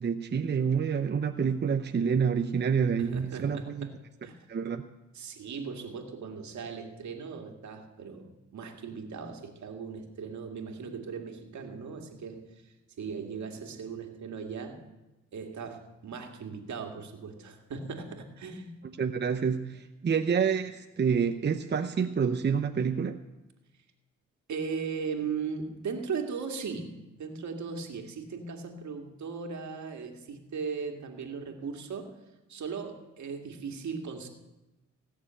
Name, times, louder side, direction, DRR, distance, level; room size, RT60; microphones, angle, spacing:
voice 1, 0.0-3.9 4.5-4.8 19.0-23.2, right 6 dB, 35° right, 7 dB, 0.7 m, -28 dB
voice 2, 3.0-3.9 4.2-4.5 5.1-14.9 15.3-18.8 24.5-32.2 32.5-34.3, right 5 dB, 65° right, 4 dB, 2.1 m, -38 dB
17.5 x 6.8 x 8.8 m, 1.0 s
cardioid pair, 70°, 31 cm